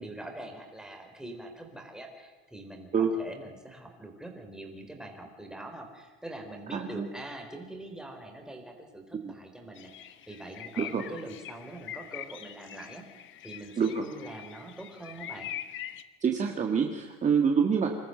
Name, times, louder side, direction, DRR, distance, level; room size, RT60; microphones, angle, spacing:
voice 1, 0.0-15.5, right 1 dB, ahead, 2 dB, 4.2 m, -44 dB
voice 2, 6.7-7.1 9.1-9.3 10.8-11.0 13.8-14.0 16.2-17.9, right 6 dB, 25° right, 3 dB, 1.9 m, -26 dB
sound 1, 9.8-16.0, left 11 dB, 40° left, 1.3 m, -43 dB
27.0 x 14.0 x 7.9 m, 1.4 s
cardioid pair, 135°, 29 cm